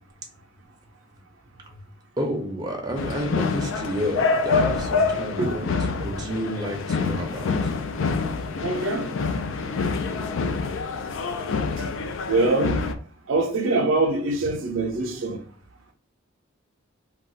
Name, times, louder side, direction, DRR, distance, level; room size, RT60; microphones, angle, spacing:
voice 1, 2.2-5.7 6.0-7.7, equal, 20° right, 0.5 m, -30 dB
sound 1, 3.0-13.0, left 4 dB, 65° left, 0.3 m, -26 dB
voice 2, 5.4-5.7 8.0-8.1 8.6-9.1 12.3-12.8 13.3-15.4, right 2 dB, 70° right, 0.5 m, -24 dB
2.3 x 2.3 x 3.8 m
head